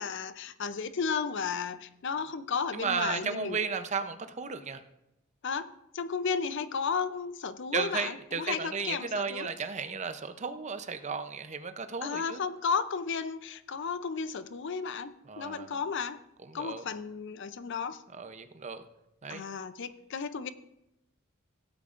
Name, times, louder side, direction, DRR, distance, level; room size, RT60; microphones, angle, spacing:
voice 1, 0.0-3.6 5.4-9.5 12.0-16.2 16.5-18.0 19.3-20.5, left 5 dB, 60° left, 13 dB, 0.5 m, -34 dB
voice 2, 2.7-4.8 7.7-12.4 15.3-15.8 16.5-16.9 18.2-18.8 19.2-19.4, right 5 dB, 35° right, 9 dB, 0.6 m, -34 dB
17.0 x 8.5 x 2.5 m, 0.87 s
head